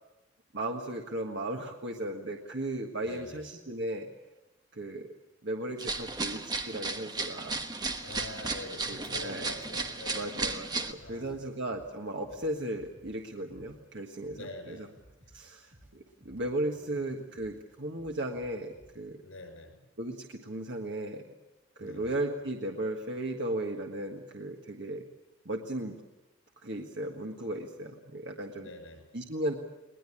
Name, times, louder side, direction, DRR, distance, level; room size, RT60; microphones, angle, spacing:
voice 1, 0.5-4.1 4.7-5.1 5.4-7.6 8.9-9.5 10.1-14.9 15.3-19.2 20.0-21.3 21.7-25.0 25.4-26.0 26.6-28.7 29.1-29.6, right 1 dB, 60° right, 2 dB, 1.6 m, -36 dB
voice 2, 3.0-3.4 8.0-10.4 11.0-11.5 14.3-15.0 16.7-17.0 19.2-19.9 21.8-22.1 28.6-29.2, left 2 dB, 90° left, 7 dB, 5.5 m, -45 dB
sound 1, 5.8-10.9, right 3 dB, 20° right, 1.2 m, -34 dB
sound 2, 11.0-18.9, right 1 dB, 40° right, 5.8 m, -59 dB
21.0 x 19.5 x 8.6 m, 1.0 s
head